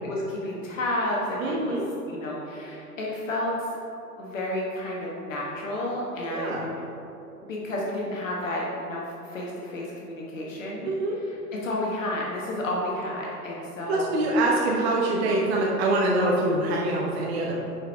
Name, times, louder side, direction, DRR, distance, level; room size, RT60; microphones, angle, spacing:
voice 1, 0.0-1.8 2.1-3.7 4.2-6.7 7.4-10.9 11.3-11.4 11.6-14.1, left 1 dB, 50° left, -3 dB, 1.2 m, -31 dB
voice 2, 1.4-1.8 6.3-6.6 10.8-11.2 13.9-17.7, right 2 dB, 40° right, -3 dB, 0.9 m, -24 dB
9.9 x 4.5 x 3.4 m, 2.9 s
figure-of-eight pair, 105°, 48 cm